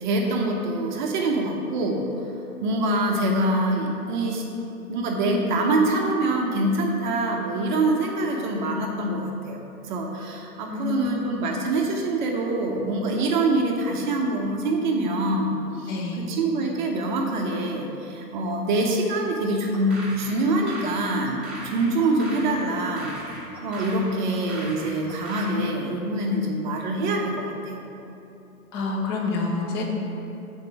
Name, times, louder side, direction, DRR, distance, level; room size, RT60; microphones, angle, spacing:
voice 1, 0.0-2.1 2.6-4.5 4.9-15.9 16.2-23.1 23.6-27.8, right 2 dB, 30° right, 0 dB, 0.7 m, -25 dB
voice 2, 10.6-11.3 15.9-16.3 28.7-29.8, left 3 dB, 15° left, 1 dB, 0.5 m, -28 dB
sound 1, 19.7-25.6, right 1 dB, ahead, 1.2 m, -39 dB
6.6 x 4.4 x 5.8 m, 2.9 s
figure-of-eight pair, 120°, 46 cm